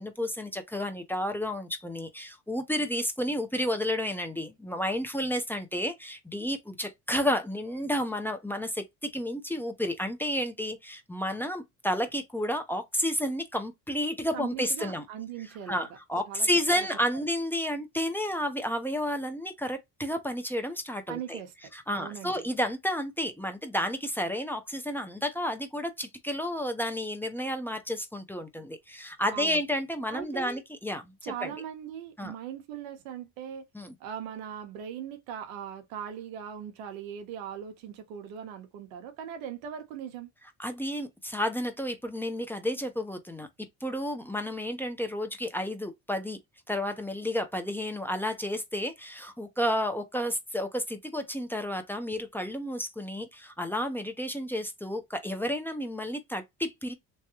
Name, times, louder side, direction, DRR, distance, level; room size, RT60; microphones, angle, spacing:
voice 1, 0.0-15.0 15.7-21.4 21.7-31.5 32.2-32.3 33.7-33.9 40.6-43.5 43.8-46.4 46.7-56.9, equal, 5° left, 0.8 m, -31 dB
voice 2, 14.3-15.9 16.3-16.5 16.8-16.9 17.1-17.2 21.1-21.5 21.9-22.5 29.3-29.6 30.1-30.6 31.2-33.6 34.0-40.3, right 9 dB, 85° right, 1.0 m, -39 dB
3.2 x 2.3 x 2.9 m
supercardioid pair, 75°, 40 cm